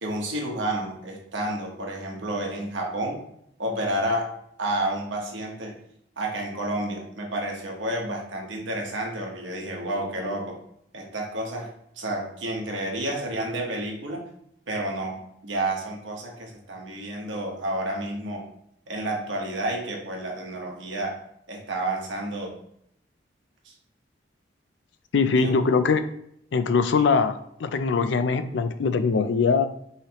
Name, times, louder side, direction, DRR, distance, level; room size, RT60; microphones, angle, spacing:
voice 1, 0.0-3.2 3.6-4.3 4.6-5.7 6.2-10.6 10.9-11.7 12.0-14.2 14.7-18.5 18.9-21.2 21.5-22.5 23.6-23.7 25.3-25.5, right 1 dB, 90° right, 0 dB, 1.2 m, -30 dB
voice 2, 25.1-26.0 26.5-29.7, left 5 dB, 75° left, 10 dB, 0.4 m, -22 dB
5.6 x 3.2 x 3.0 m, 0.74 s
head